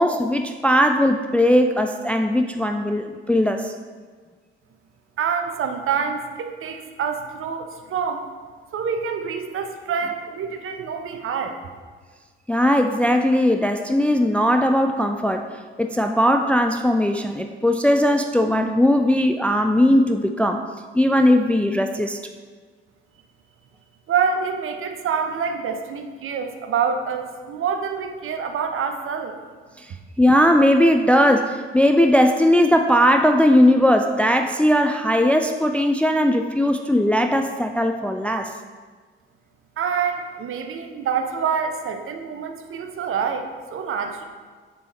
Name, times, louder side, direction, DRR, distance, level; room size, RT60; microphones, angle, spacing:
voice 1, 0.0-3.7 12.5-15.5 15.8-20.6 20.9-22.2 29.8-38.5, equal, 5° left, 6 dB, 0.4 m, -19 dB
voice 2, 5.2-8.3 8.7-11.6 24.1-29.3 39.8-44.2, right 6 dB, 45° right, 6 dB, 0.9 m, -26 dB
7.6 x 7.3 x 3.9 m, 1.5 s
figure-of-eight pair, 45°, 29 cm